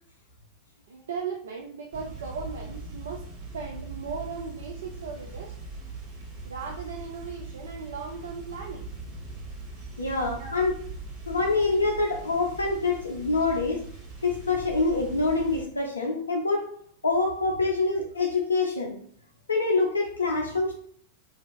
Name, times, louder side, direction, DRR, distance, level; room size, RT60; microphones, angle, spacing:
voice 1, 0.9-3.2 3.5-5.6 6.4-8.9 10.3-10.6, right 5 dB, 65° right, 1 dB, 0.3 m, -37 dB
sound 1, 1.9-15.6, right 3 dB, 45° right, 0.9 m, -41 dB
voice 2, 10.0-10.8 11.3-13.8 14.2-16.7 17.0-18.9 19.5-20.8, left 3 dB, 75° left, 0 dB, 0.4 m, -25 dB
2.4 x 2.3 x 3.4 m, 0.62 s
figure-of-eight pair, 90°, 0 cm